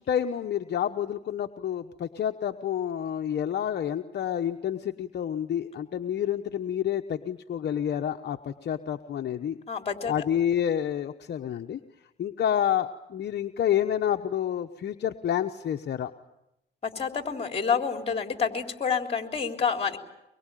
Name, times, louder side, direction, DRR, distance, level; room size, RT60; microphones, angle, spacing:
voice 1, 0.0-9.6 10.1-11.8 12.2-16.1, left 10 dB, 55° left, 5 dB, 1.1 m, -29 dB
voice 2, 9.7-10.1 16.8-20.0, left 6 dB, 30° left, 4 dB, 3.7 m, -28 dB
24.0 x 23.5 x 9.2 m, 0.88 s
cardioid pair, 90°, 20 cm